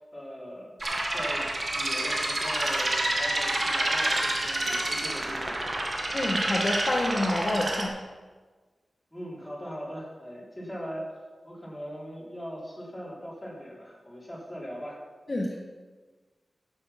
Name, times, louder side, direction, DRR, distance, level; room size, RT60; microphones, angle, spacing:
voice 1, 0.0-5.6 9.1-11.0 11.4-15.0, equal, 10° left, -5 dB, 3.8 m, -40 dB
sound 1, 0.8-7.9, right 1 dB, 45° right, 1.7 m, -28 dB
voice 2, 6.1-8.0 15.3-15.6, left 1 dB, 40° left, -2 dB, 1.3 m, -28 dB
11.5 x 7.8 x 5.8 m, 1.4 s
wide cardioid pair, 110°, 0 cm